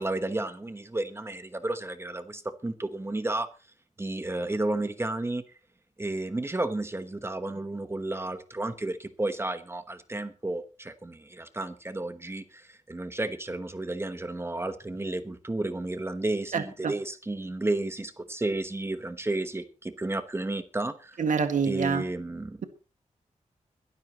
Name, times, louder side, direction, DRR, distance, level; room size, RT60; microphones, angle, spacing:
voice 1, 0.0-3.5 4.0-5.4 6.0-21.2 21.6-22.6, right 2 dB, 20° right, 11 dB, 1.1 m, -32 dB
voice 2, 16.5-16.9 21.2-22.0, right 5 dB, 80° right, 8 dB, 1.7 m, -26 dB
22.5 x 12.5 x 2.9 m, 0.32 s
wide cardioid pair, 120°, 13 cm